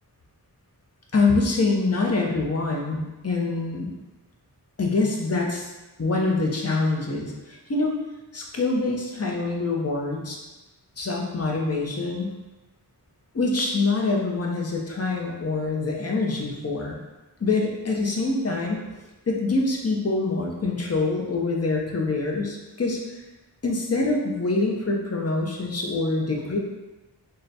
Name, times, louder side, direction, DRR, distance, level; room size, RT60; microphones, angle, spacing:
voice 1, 1.1-3.9 4.8-5.7 6.0-7.9 8.3-10.4 11.0-12.3 13.3-17.0 17.4-18.8 19.3-23.0 23.6-26.6, left 3 dB, 40° left, -1 dB, 0.7 m, -25 dB
3.9 x 2.2 x 4.0 m, 1.1 s
wide cardioid pair, 60°, 40 cm